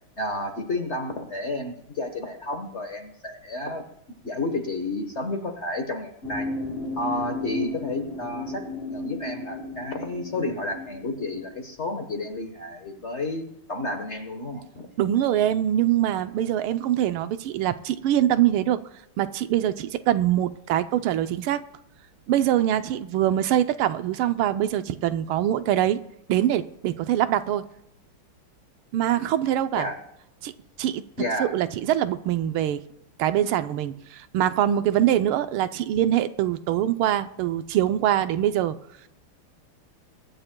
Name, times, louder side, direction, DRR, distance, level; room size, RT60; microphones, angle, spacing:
voice 1, 0.2-3.9 4.2-6.5 7.0-14.9 29.7-30.0 31.2-31.5, left 2 dB, 40° left, 1.1 m, -31 dB
sound 1, 6.2-11.5, left 2 dB, 85° left, 4.7 m, -34 dB
voice 2, 15.0-18.8 19.2-21.6 22.3-26.0 26.3-27.6 28.9-29.9 30.4-30.5 30.8-31.0 31.4-32.8 33.2-38.8, right 11 dB, 80° right, 1.5 m, -23 dB
23.5 x 11.0 x 2.2 m
omnidirectional pair, 2.4 m